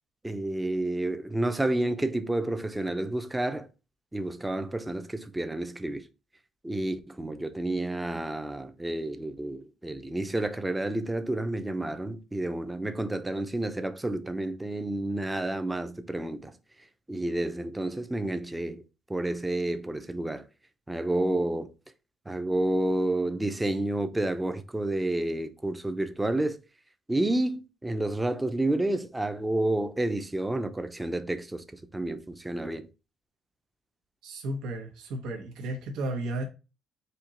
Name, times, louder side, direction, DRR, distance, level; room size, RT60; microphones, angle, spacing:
voice 1, 0.2-3.7 4.1-6.0 6.6-16.5 17.1-18.8 19.1-20.5 20.9-21.7 22.3-26.6 27.1-31.6 31.9-32.9, right 1 dB, 10° right, 0.5 m, -30 dB
voice 2, 34.2-36.4, right 1 dB, 85° right, 1.0 m, -33 dB
4.4 x 2.8 x 3.8 m
cardioid pair, 125°, 0 cm